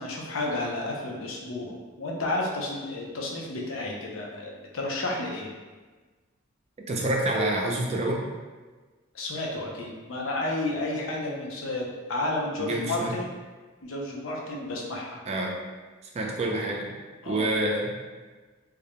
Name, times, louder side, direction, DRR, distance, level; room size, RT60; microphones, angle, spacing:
voice 1, 0.0-5.5 9.1-13.3 13.8-15.2 17.2-17.4, left 2 dB, 75° left, -2 dB, 0.5 m, -31 dB
voice 2, 6.9-8.2 12.6-13.1 15.3-15.6 16.1-16.9 17.3-17.9, right 1 dB, 30° right, -1 dB, 0.3 m, -27 dB
2.3 x 2.1 x 2.8 m, 1.3 s
head